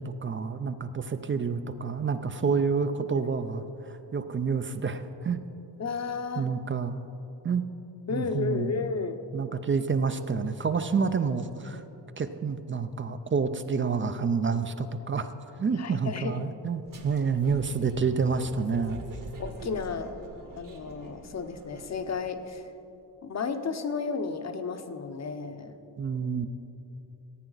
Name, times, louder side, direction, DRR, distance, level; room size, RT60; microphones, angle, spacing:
voice 1, 0.0-5.4 6.4-7.0 7.4-7.6 8.1-8.7 9.3-11.8 12.2-15.3 15.6-19.0 26.0-26.5, right 5 dB, 30° right, 10 dB, 0.4 m, -28 dB
voice 2, 5.8-6.5 8.1-9.2 15.7-16.4 19.4-20.1 20.6-22.6 23.2-25.7, left 5 dB, 40° left, 9 dB, 0.8 m, -33 dB
sound 1, 16.9-22.4, right 3 dB, 45° right, 1.2 m, -45 dB
15.5 x 8.8 x 4.0 m, 2.9 s
cardioid pair, 100°, 44 cm